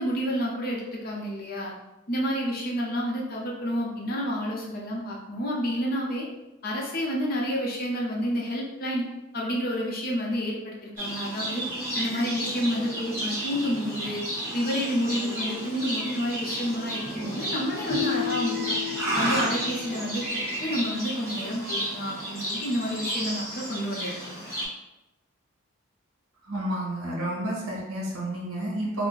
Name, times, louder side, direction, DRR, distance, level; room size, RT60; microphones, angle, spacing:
voice 1, 0.0-1.7 2.1-6.3 6.6-9.0 9.3-11.7 12.0-14.2 14.5-18.8 19.1-24.5, equal, 45° left, -3 dB, 0.6 m, -29 dB
Livestock farm animals working animals, 11.0-24.6, right 1 dB, 10° right, 1.0 m, -32 dB
Keyboard (musical), 17.9-20.7, left 13 dB, 10° left, 0.8 m, -34 dB
voice 2, 26.4-29.1, right 1 dB, 80° right, -3 dB, 1.0 m, -30 dB
2.5 x 2.1 x 3.8 m, 0.97 s
head